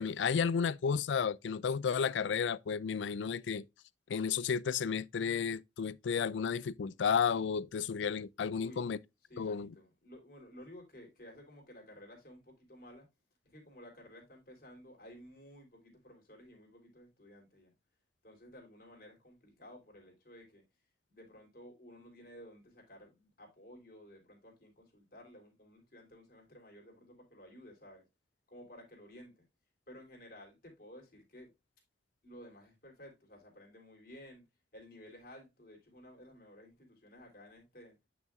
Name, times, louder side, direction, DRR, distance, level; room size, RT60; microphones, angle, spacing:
voice 1, 0.0-3.7 4.1-9.0 9.4-9.7, left 6 dB, 80° left, 0.4 m, -32 dB
voice 2, 8.6-9.0 9.3-13.1 13.4-17.7 18.2-20.6 21.1-28.0 28.5-29.5 29.9-31.5 32.2-34.4 34.7-38.0, equal, 55° left, 3.4 m, -54 dB
9.1 x 6.0 x 2.3 m
head